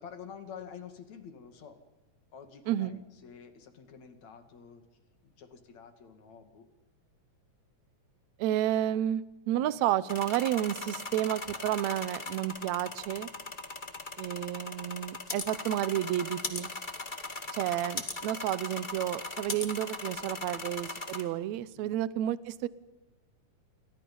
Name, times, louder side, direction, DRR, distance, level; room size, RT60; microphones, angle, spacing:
voice 1, 0.0-1.8 2.3-4.9 5.2-6.7 9.6-9.9 20.4-20.7 21.8-21.9, left 7 dB, 60° left, 7 dB, 3.5 m, -49 dB
voice 2, 2.7-3.0 8.4-13.3 14.2-16.7 17.5-22.7, right 12 dB, 70° right, 16 dB, 2.0 m, -31 dB
sound 1, 10.1-21.2, left 2 dB, 20° left, 1.7 m, -39 dB
29.0 x 24.0 x 5.5 m, 1.1 s
omnidirectional pair, 3.7 m